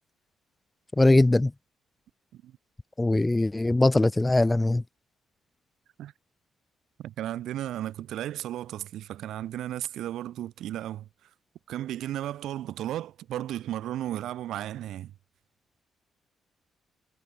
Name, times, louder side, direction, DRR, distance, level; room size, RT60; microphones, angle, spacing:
voice 1, 1.0-1.5 3.0-4.8, left 2 dB, 15° left, 0.3 m, -21 dB
voice 2, 7.0-11.3 11.7-15.1, right 12 dB, 80° right, 0.5 m, -34 dB
cardioid pair, 90°, 0 cm